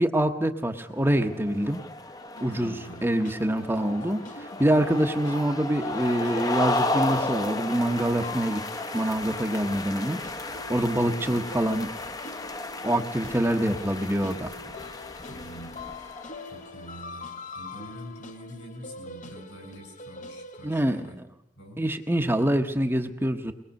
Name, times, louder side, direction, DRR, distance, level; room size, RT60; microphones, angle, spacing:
voice 1, 0.0-1.8 2.4-2.7 3.0-8.6 8.9-11.9 12.8-14.5 20.6-21.2 21.8-23.5, right 1 dB, 10° right, 5 dB, 1.0 m, -25 dB
sound 1, 1.0-16.7, left 2 dB, 20° left, 0.9 m, -34 dB
voice 2, 2.4-3.0 10.9-11.4 15.3-15.9 16.5-21.2 21.6-21.8, equal, 70° left, 3 dB, 7.6 m, -45 dB
sound 2, 2.4-21.1, left 3 dB, 45° left, 1.1 m, -44 dB
22.5 x 20.5 x 6.5 m, 0.82 s
head